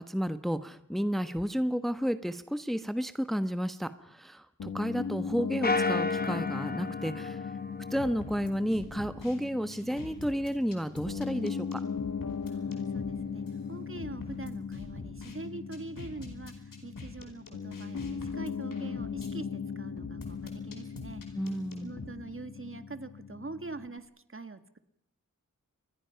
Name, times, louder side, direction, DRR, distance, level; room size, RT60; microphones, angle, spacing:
voice 1, 0.0-7.4 7.9-11.8 21.3-21.9, equal, ahead, 11 dB, 1.1 m, -32 dB
Piano, 4.6-24.0, left 6 dB, 65° left, 1.4 m, -38 dB
sound 1, 5.6-8.3, left 3 dB, 30° left, 1.5 m, -33 dB
sound 2, 8.0-9.4 9.7-13.2 13.5-13.6 14.0-15.4 15.7-19.3 20.0-22.1, left 3 dB, 90° left, 4.7 m, -45 dB
voice 2, 12.5-21.2 21.8-24.8, right 3 dB, 40° right, 10 dB, 1.8 m, -44 dB
28.5 x 22.0 x 5.8 m, 0.78 s
cardioid pair, 50°, 32 cm